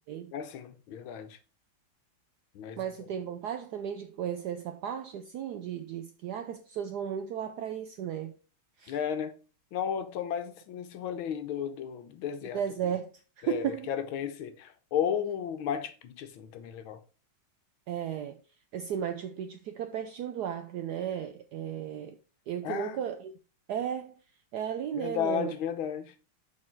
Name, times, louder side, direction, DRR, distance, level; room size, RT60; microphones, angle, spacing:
voice 1, 0.3-1.4 2.5-2.8 8.9-9.3 9.7-12.6 13.4-17.0 22.6-23.0 24.9-26.1, left 9 dB, 80° left, 1.6 m, -34 dB
voice 2, 2.8-8.4 8.8-9.0 12.5-13.9 17.9-18.4 18.7-22.2 22.5-23.3 23.7-24.1 24.5-25.5, right 9 dB, 80° right, 0.9 m, -35 dB
6.5 x 4.3 x 4.4 m
omnidirectional pair, 2.2 m